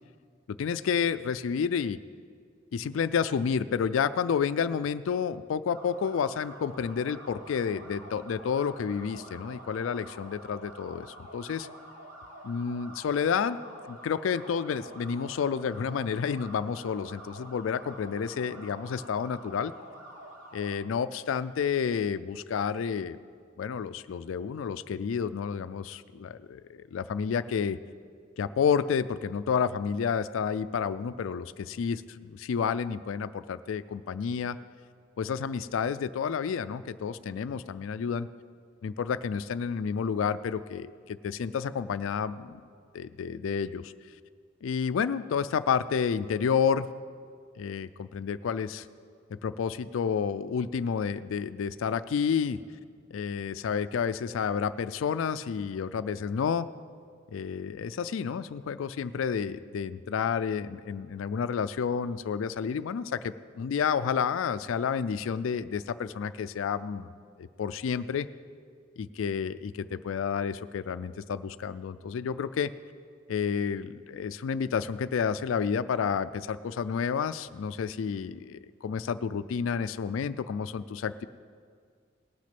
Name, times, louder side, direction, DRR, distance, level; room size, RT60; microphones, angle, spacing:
voice 1, 0.6-2.0 2.7-11.1 11.3-11.7 12.4-13.6 13.8-19.7 20.5-23.2 23.6-27.8 28.4-34.6 35.2-38.3 38.8-42.6 42.9-43.9 44.6-46.9 47.6-48.9 49.3-52.6 53.1-56.7 57.3-67.1 67.4-68.3 69.0-72.7 73.3-81.2, left 6 dB, 80° left, 14 dB, 0.3 m, -30 dB
sound 1, 5.7-20.7, right 1 dB, 80° right, 3.1 m, -48 dB
18.5 x 6.2 x 5.9 m, 2.1 s
head